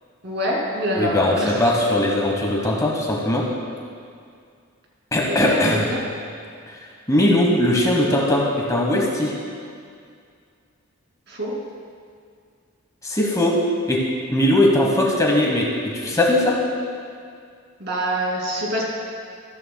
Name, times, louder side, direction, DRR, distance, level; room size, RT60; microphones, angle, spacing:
voice 1, 0.2-1.6 5.2-6.0 11.3-11.5 17.8-18.8, equal, 55° right, -3 dB, 2.6 m, -25 dB
voice 2, 1.0-3.4 5.1-5.8 7.1-9.3 13.0-13.6 13.9-14.0 14.3-16.6, left 1 dB, 15° left, -2 dB, 1.1 m, -19 dB
14.0 x 13.5 x 2.2 m, 2.2 s
head